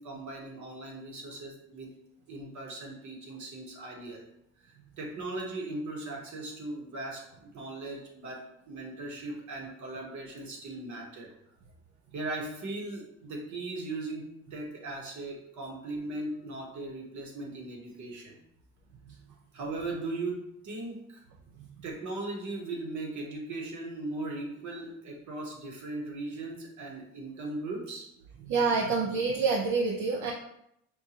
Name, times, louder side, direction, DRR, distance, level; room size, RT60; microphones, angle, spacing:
voice 1, 0.0-1.9 2.3-4.2 4.6-11.3 12.1-18.4 19.5-21.2 21.8-28.1, right 2 dB, 70° right, 0 dB, 1.2 m, -38 dB
voice 2, 28.4-30.3, right 4 dB, 85° right, 0 dB, 0.6 m, -27 dB
5.3 x 2.3 x 2.8 m, 0.77 s
cardioid pair, 90°, 30 cm